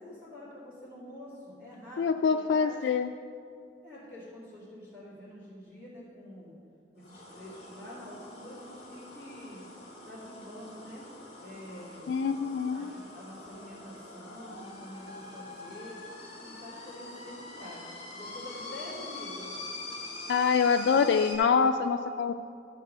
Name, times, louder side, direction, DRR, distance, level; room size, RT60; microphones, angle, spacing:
voice 1, 0.0-2.9 3.8-6.5 7.0-9.6 10.0-11.1 11.4-12.1 12.6-16.0 16.4-19.6, left 1 dB, 10° right, -14 dB, 2.5 m, -47 dB
voice 2, 2.0-3.1 12.1-12.9 20.3-22.3, left 6 dB, 75° left, 7 dB, 0.3 m, -25 dB
sound 1, 7.0-21.4, left 2 dB, 35° left, 2.3 m, -44 dB
13.0 x 4.7 x 6.6 m, 2.4 s
head